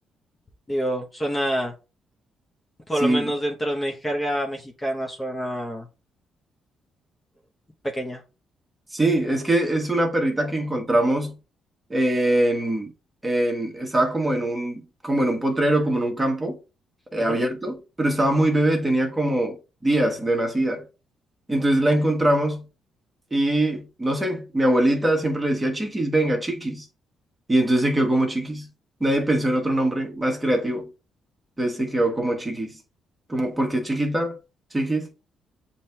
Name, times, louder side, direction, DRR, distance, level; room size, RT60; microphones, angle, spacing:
voice 1, 0.7-1.7 2.9-5.9 7.9-8.2 17.2-17.4, equal, 20° left, 0.8 m, -27 dB
voice 2, 8.9-11.4 11.9-12.9 13.2-16.6 17.1-19.6 19.8-20.8 21.5-22.6 23.3-26.9 27.5-28.7 29.0-30.9 31.6-32.8 33.3-34.4 34.7-35.1, right 1 dB, 15° right, 1.1 m, -22 dB
7.2 x 2.9 x 2.2 m
cardioid pair, 90°, 0 cm